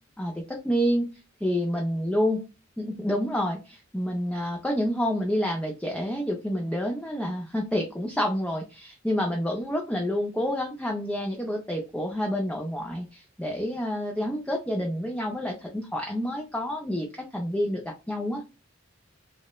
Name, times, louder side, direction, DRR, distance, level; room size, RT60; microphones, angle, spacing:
voice 1, 0.2-1.1 1.4-2.4 2.8-18.4, equal, 5° left, 0 dB, 0.4 m, -28 dB
2.9 x 2.0 x 2.2 m, 0.29 s
head